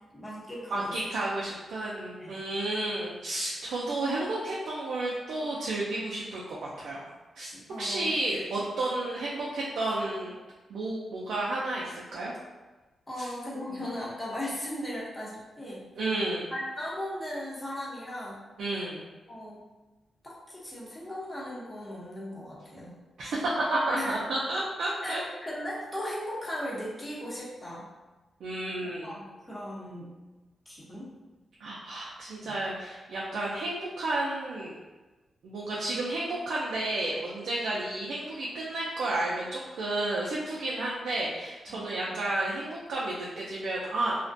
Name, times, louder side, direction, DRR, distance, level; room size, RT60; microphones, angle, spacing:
voice 1, 0.1-1.0 2.2-2.4 7.7-8.4 13.1-15.9 16.5-18.4 19.3-19.6 20.2-23.0 23.9-24.2 25.0-27.9 28.8-30.1 30.7-31.1 32.4-32.6 41.7-42.2, left 1 dB, 15° left, -6 dB, 0.8 m, -37 dB
voice 2, 0.7-7.0 7.4-7.5 7.8-10.3 10.7-12.3 13.2-13.3 13.7-13.8 16.0-16.5 18.6-19.0 23.2-25.2 28.4-29.1 31.6-34.7 35.4-44.2, right 2 dB, 85° right, -5 dB, 0.4 m, -31 dB
2.4 x 2.1 x 2.5 m, 1.2 s
cardioid pair, 105°, 0 cm